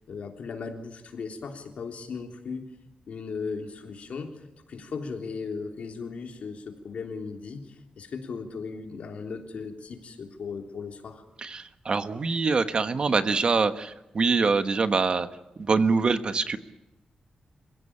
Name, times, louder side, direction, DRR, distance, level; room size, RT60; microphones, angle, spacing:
voice 1, 0.1-2.7 3.1-11.2, left 5 dB, 65° left, 3 dB, 3.4 m, -37 dB
voice 2, 11.4-15.3 15.6-16.6, right 4 dB, 40° right, 9 dB, 1.3 m, -24 dB
27.5 x 16.5 x 8.8 m, 0.93 s
wide cardioid pair, 155°, 2 cm